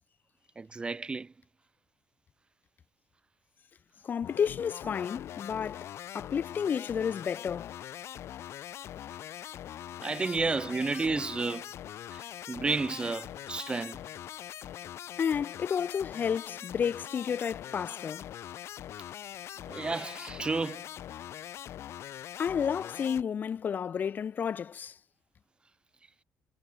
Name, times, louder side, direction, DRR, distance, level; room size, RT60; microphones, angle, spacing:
voice 1, 0.6-1.3 10.0-11.7 12.1-12.2 12.5-14.0 19.7-20.8, right 3 dB, 20° right, 0.5 m, -31 dB
voice 2, 4.0-5.9 6.1-7.7 15.2-18.2 22.4-24.9, left 7 dB, 40° left, 0.4 m, -31 dB
sound 1, 4.2-23.2, left 11 dB, 65° left, 2.0 m, -42 dB
cardioid pair, 130°, 5 cm